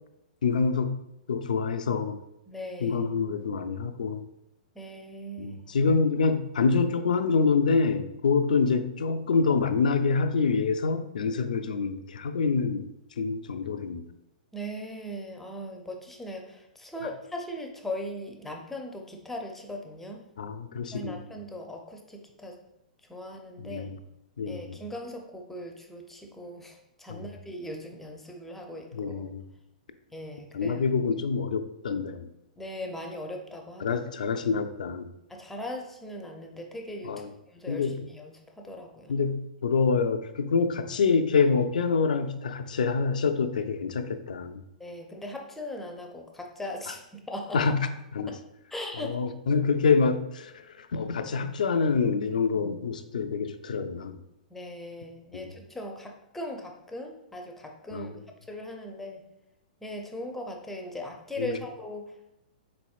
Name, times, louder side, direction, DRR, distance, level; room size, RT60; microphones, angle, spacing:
voice 1, 0.4-0.9 1.3-2.2 2.8-4.2 5.4-14.1 20.4-21.2 23.6-24.0 24.4-24.8 27.1-27.2 28.9-29.4 30.5-32.3 33.8-35.1 37.0-37.3 37.7-37.9 39.1-44.6 47.5-48.3 49.0-54.2 55.3-55.5 57.9-58.1 61.4-61.6, left 5 dB, 70° left, 9 dB, 0.4 m, -26 dB
voice 2, 2.5-3.0 4.7-5.6 14.5-20.2 20.9-22.6 23.1-23.9 24.4-29.3 30.1-30.8 32.6-34.0 35.3-39.2 44.8-47.0 47.3-47.6 48.3-48.4 48.7-49.2 54.5-58.2 58.5-59.2 59.8-62.3, left 1 dB, 5° left, 2 dB, 0.5 m, -39 dB
4.2 x 4.0 x 2.4 m, 0.86 s
figure-of-eight pair, 115°, 4 cm